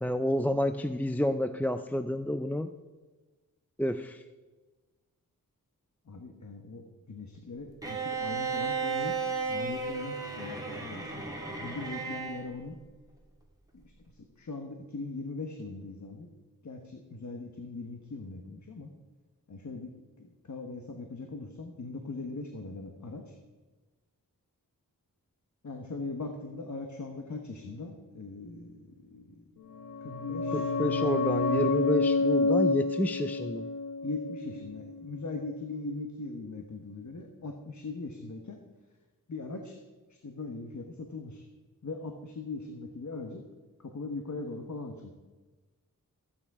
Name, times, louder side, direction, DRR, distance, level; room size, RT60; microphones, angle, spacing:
voice 1, 0.0-2.7 3.8-4.2 30.5-33.7, equal, 5° left, 10 dB, 0.4 m, -29 dB
voice 2, 6.1-9.2 9.5-12.8 13.7-16.3 16.6-18.9 19.5-19.9 20.2-23.4 25.6-29.4 30.0-30.7 34.0-38.6 39.3-39.8 40.1-41.4 41.8-43.4 43.8-45.1, left 3 dB, 55° left, 4 dB, 1.2 m, -40 dB
Bowed string instrument, 7.8-12.5, right 5 dB, 10° right, 2.5 m, -34 dB
sound 1, 29.7-35.1 35.3-35.4, left 3 dB, 80° left, 1.4 m, -29 dB
14.5 x 8.8 x 4.8 m, 1.3 s
wide cardioid pair, 80°, 34 cm